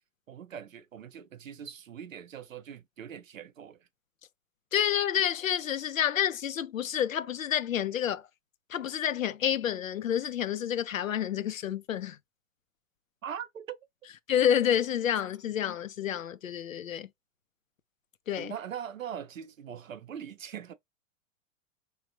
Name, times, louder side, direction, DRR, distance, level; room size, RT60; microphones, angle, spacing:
voice 1, 0.3-3.9 13.2-13.8 18.4-20.7, right 8 dB, 80° right, 0.6 m, -41 dB
voice 2, 4.7-8.3 8.7-12.2 14.3-17.1 18.3-18.5, left 10 dB, 80° left, 0.5 m, -29 dB
3.3 x 2.3 x 2.5 m
figure-of-eight pair, 95°, 39 cm